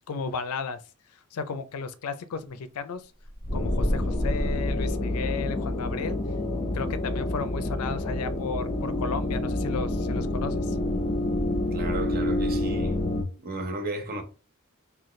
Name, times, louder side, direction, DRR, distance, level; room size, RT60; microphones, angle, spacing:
voice 1, 0.1-0.8 1.3-3.1 3.5-6.2 6.7-10.8, left 4 dB, 90° left, 0.4 m, -34 dB
sound 1, 3.2-5.7, equal, 10° left, 1.5 m, -30 dB
sound 2, 3.5-13.2, left 1 dB, 25° left, 0.7 m, -28 dB
voice 2, 11.7-13.0 13.4-14.2, right 2 dB, 45° right, 0.7 m, -33 dB
4.0 x 2.3 x 3.1 m
head